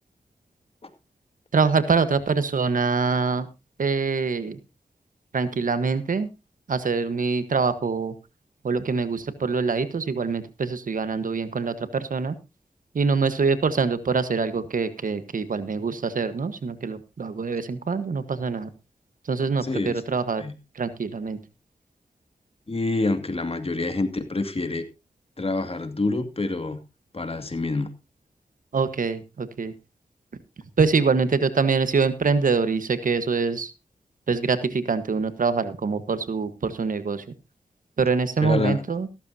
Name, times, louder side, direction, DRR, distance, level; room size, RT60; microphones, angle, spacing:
voice 1, 1.5-3.5 3.8-4.6 5.3-6.3 6.7-8.1 8.6-12.3 12.9-18.7 19.3-20.4 20.7-21.4 28.7-29.7 30.8-33.7 34.3-37.2 38.0-39.1, right 4 dB, 75° right, 12 dB, 1.4 m, -24 dB
voice 2, 19.6-20.0 20.4-20.5 22.7-24.8 25.4-26.8 27.1-27.9 38.4-38.8, left 2 dB, 45° left, 8 dB, 2.3 m, -27 dB
15.0 x 13.0 x 2.8 m, 0.27 s
cardioid pair, 45°, 14 cm